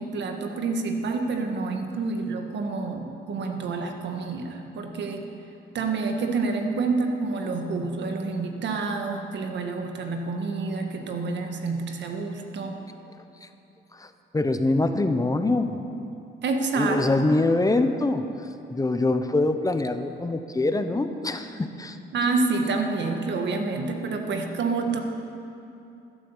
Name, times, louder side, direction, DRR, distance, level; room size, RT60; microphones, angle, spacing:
voice 1, 0.0-5.3 5.7-12.8 16.4-17.3 22.1-25.0, right 3 dB, 65° right, 4 dB, 1.6 m, -28 dB
voice 2, 13.9-15.8 16.7-22.0, left 2 dB, 15° left, 8 dB, 0.8 m, -24 dB
14.5 x 8.4 x 7.3 m, 2.8 s
cardioid pair, 90°, 20 cm